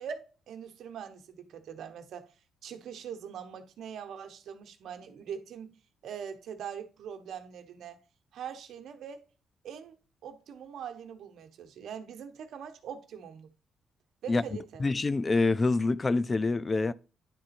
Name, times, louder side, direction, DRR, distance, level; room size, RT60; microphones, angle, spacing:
voice 1, 0.0-2.3 2.6-5.7 6.0-8.0 8.3-9.2 9.6-13.5 14.2-14.8, right 7 dB, 70° right, 1.0 m, -42 dB
voice 2, 14.8-16.9, left 3 dB, 30° left, 0.4 m, -26 dB
9.8 x 3.9 x 4.3 m
cardioid pair, 90°, 0 cm